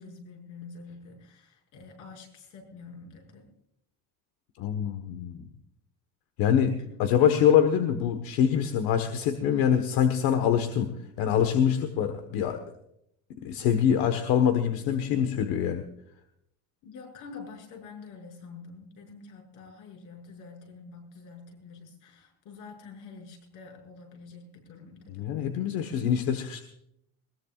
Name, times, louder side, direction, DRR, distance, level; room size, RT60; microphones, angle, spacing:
voice 1, 0.0-3.5 7.1-7.3 16.8-25.3, left 4 dB, 60° left, 2 dB, 6.5 m, -47 dB
voice 2, 4.6-5.5 6.4-10.9 11.2-12.6 13.4-15.8 25.1-26.6, left 8 dB, 80° left, 7 dB, 1.4 m, -24 dB
21.0 x 20.0 x 2.5 m, 0.76 s
cardioid pair, 160°, 35 cm